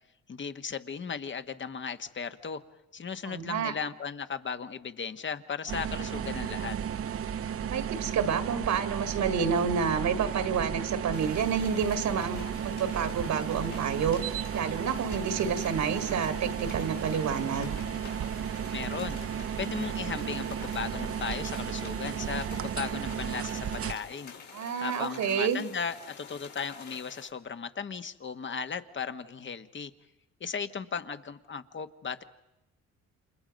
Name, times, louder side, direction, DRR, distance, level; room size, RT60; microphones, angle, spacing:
voice 1, 0.3-2.6 2.9-6.8 18.7-19.2 19.6-24.3 24.8-29.9 30.4-32.2, left 6 dB, 40° left, 10 dB, 1.4 m, -36 dB
voice 2, 3.3-3.7 7.7-14.2 14.5-17.8 24.5-25.6, right 6 dB, 70° right, 8 dB, 1.9 m, -29 dB
sound 1, 5.7-23.9, right 8 dB, 50° right, 0.8 m, -34 dB
sound 2, 11.1-27.3, left 6 dB, 70° left, 4.9 m, -48 dB
29.5 x 28.0 x 5.3 m, 0.91 s
cardioid pair, 90°, 30 cm